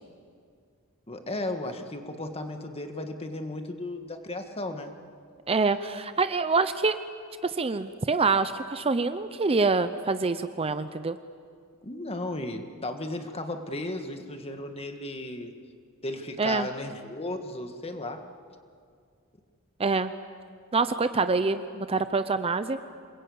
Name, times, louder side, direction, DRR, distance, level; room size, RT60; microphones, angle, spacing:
voice 1, 1.1-4.9 11.8-15.5 16.0-18.2, left 2 dB, 30° left, 6 dB, 1.7 m, -35 dB
voice 2, 5.5-7.0 7.4-11.2 16.4-16.7 19.8-20.1 20.7-22.8, right 4 dB, 25° right, 11 dB, 0.6 m, -26 dB
27.0 x 21.5 x 8.6 m, 2.2 s
head